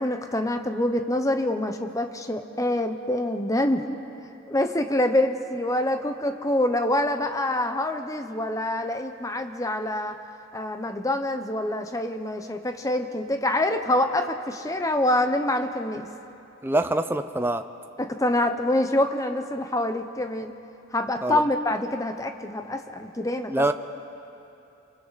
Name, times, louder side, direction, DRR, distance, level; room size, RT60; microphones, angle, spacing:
voice 1, 0.0-4.0 4.5-10.2 10.5-16.1 18.0-20.5 20.9-23.6, left 1 dB, 15° left, 7 dB, 0.9 m, -26 dB
voice 2, 16.6-17.7 21.2-21.4 23.5-23.7, right 2 dB, 10° right, 9 dB, 0.6 m, -24 dB
28.5 x 23.5 x 4.2 m, 2.8 s
head